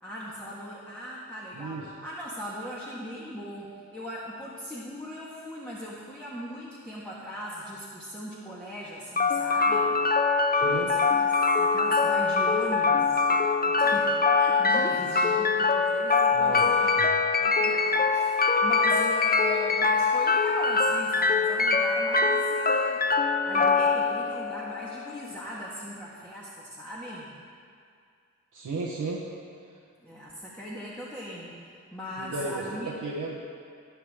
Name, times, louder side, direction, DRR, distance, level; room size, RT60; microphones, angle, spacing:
voice 1, 0.0-10.0 10.7-11.3 11.6-16.9 17.4-23.1 23.4-27.3 30.0-32.9, equal, 5° left, -7 dB, 1.8 m, -39 dB
voice 2, 1.5-1.9 10.5-10.9 16.3-17.1 28.5-29.3 32.2-32.6 33.0-33.4, right 3 dB, 85° right, -5 dB, 1.3 m, -34 dB
sound 1, 9.2-25.2, left 4 dB, 30° left, 0.6 m, -23 dB
19.0 x 7.2 x 3.7 m, 2.2 s
wide cardioid pair, 65°, 30 cm